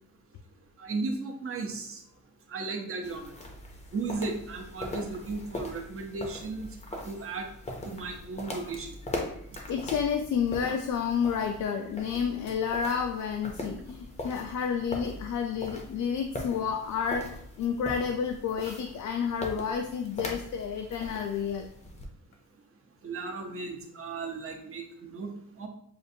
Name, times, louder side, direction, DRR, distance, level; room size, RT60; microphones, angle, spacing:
voice 1, 0.8-2.0 2.5-3.3 3.9-6.7 7.0-7.5 7.8-9.0 23.0-25.3 25.6-25.7, right 3 dB, 45° right, 3 dB, 0.7 m, -35 dB
sound 1, 3.0-22.0, left 1 dB, 20° left, 0.6 m, -41 dB
voice 2, 9.7-21.7, left 7 dB, 70° left, 3 dB, 0.4 m, -30 dB
6.6 x 2.5 x 2.6 m, 0.69 s
wide cardioid pair, 175°, 31 cm